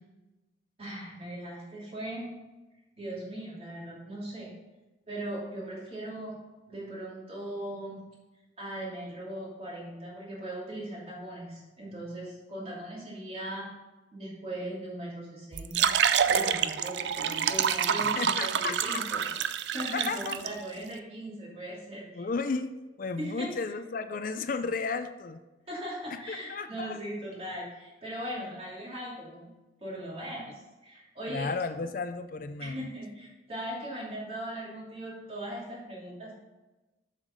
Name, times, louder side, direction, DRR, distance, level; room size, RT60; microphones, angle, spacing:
voice 1, 0.8-2.3 3.0-4.5 5.1-6.3 6.7-8.0 8.6-13.7 14.1-16.0 16.2-19.2 19.7-22.3 23.2-23.5 25.7-29.5 29.8-31.5 32.6-36.3, right 1 dB, 35° right, -5 dB, 2.8 m, -39 dB
sound 1, 15.5-20.5, right 8 dB, 85° right, 0.4 m, -27 dB
voice 2, 18.0-18.8 19.9-20.4 22.1-22.7 23.0-25.4 26.1-27.0 31.3-32.9, left 4 dB, 50° left, 10 dB, 0.4 m, -33 dB
7.3 x 6.6 x 5.2 m, 1.1 s
head